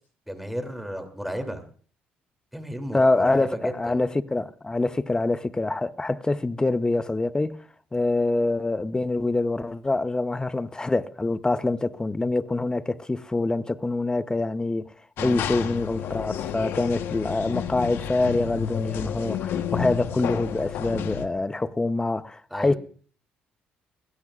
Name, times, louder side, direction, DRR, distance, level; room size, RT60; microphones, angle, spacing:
voice 1, 0.3-1.6 2.5-4.0 15.2-15.8 22.5-22.8, equal, ahead, 2.9 m, -33 dB
voice 2, 2.9-7.6 7.9-14.9 15.2-22.8, left 2 dB, 20° left, 0.8 m, -25 dB
sound 1, 15.2-21.3, left 9 dB, 70° left, 1.2 m, -31 dB
21.5 x 16.5 x 2.5 m
supercardioid pair, 65°, 4 cm